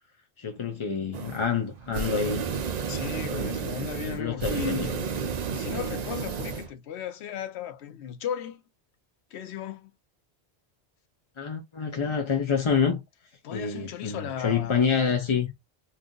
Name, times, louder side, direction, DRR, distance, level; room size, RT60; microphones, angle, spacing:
voice 1, 0.4-2.5 3.2-3.7 4.0-4.9 11.4-13.0 13.5-15.5, left 6 dB, 45° left, 0.4 m, -27 dB
sound 1, 1.1-1.5 1.8-6.7, right 6 dB, 55° right, 0.5 m, -32 dB
voice 2, 2.9-8.6 9.3-9.9 13.4-14.9, left 9 dB, 80° left, 0.9 m, -36 dB
2.6 x 2.4 x 3.7 m
omnidirectional pair, 1.1 m